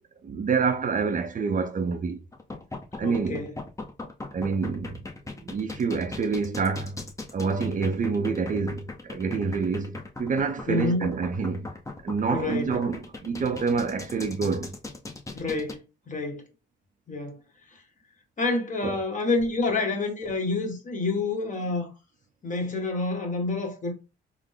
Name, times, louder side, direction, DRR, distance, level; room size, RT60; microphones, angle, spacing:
voice 1, 0.2-2.2 3.0-3.5 4.3-5.0 5.4-7.0 7.3-11.7 12.0-14.8 18.8-19.0, right 5 dB, 40° right, 0.5 m, -27 dB
sound 1, 2.3-15.7, left 3 dB, 15° left, 0.7 m, -38 dB
voice 2, 3.0-3.6 10.7-11.1 12.3-12.8 15.3-15.8 16.1-16.5 17.1-17.4 18.4-21.9 22.4-24.0, left 3 dB, 40° left, 1.2 m, -28 dB
3.6 x 2.0 x 3.8 m
cardioid pair, 90°, 20 cm